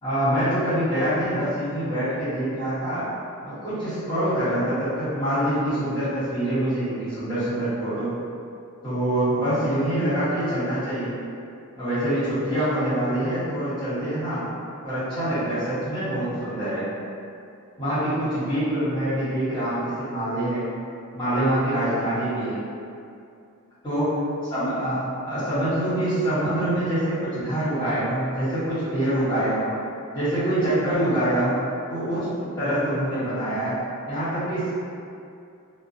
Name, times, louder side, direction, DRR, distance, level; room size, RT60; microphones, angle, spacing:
voice 1, 0.0-3.1 3.4-8.1 8.8-11.1 11.7-14.4 14.8-16.9 17.8-20.6 21.1-22.6 23.8-24.1 24.5-29.7 30.1-31.6 31.9-33.8 34.1-34.7, right 1 dB, 20° left, -15 dB, 1.3 m, -25 dB
2.4 x 2.2 x 2.6 m, 2.5 s
head